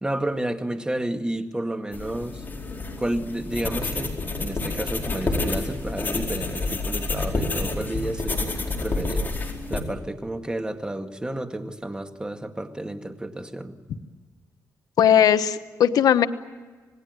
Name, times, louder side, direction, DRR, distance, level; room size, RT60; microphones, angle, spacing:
voice 1, 0.0-2.4 3.0-9.3 9.7-13.7, right 1 dB, 15° right, 6 dB, 1.9 m, -31 dB
sound 1, 1.9-9.8, left 3 dB, 30° left, 4.6 m, -29 dB
voice 2, 15.0-16.3, left 9 dB, 80° left, 10 dB, 1.1 m, -18 dB
27.0 x 19.5 x 9.6 m, 1.4 s
cardioid pair, 100°, 6 cm